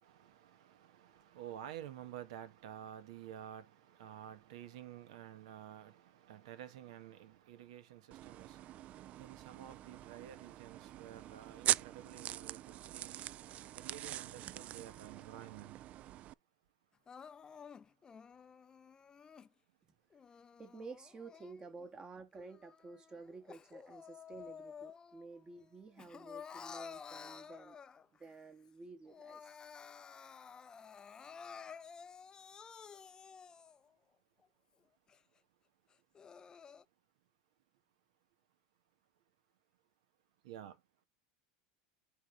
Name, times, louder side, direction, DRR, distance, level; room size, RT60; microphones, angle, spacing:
voice 1, 0.0-13.2 13.7-15.8 40.4-40.8, right 10 dB, 80° right, 1.4 m, -51 dB
sound 1, 8.1-16.3, right 13 dB, 45° right, 0.3 m, -42 dB
Crying sobbing, 17.1-19.5 20.1-21.9 22.3-25.3 25.6-28.2 28.7-28.8 29.0-33.9 34.4-34.5 35.1-35.2 35.9-36.8, left 6 dB, 25° left, 0.4 m, -52 dB
voice 2, 20.6-27.8 28.2-29.5, right 3 dB, 25° right, 1.5 m, -52 dB
9.9 x 3.6 x 3.2 m
supercardioid pair, 105°, 3 cm